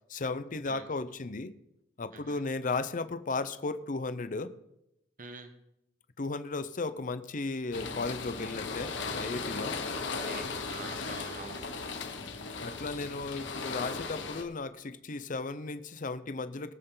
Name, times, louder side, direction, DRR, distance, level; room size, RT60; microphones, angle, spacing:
voice 1, 0.1-1.5 2.0-4.5 6.2-9.8 12.6-16.7, left 3 dB, 45° left, 0.7 m, -35 dB
voice 2, 2.1-2.4 5.2-5.5 10.0-11.7, right 3 dB, 45° right, 1.2 m, -46 dB
sound 1, 7.7-14.4, left 4 dB, 85° left, 1.4 m, -37 dB
21.5 x 7.8 x 3.9 m
head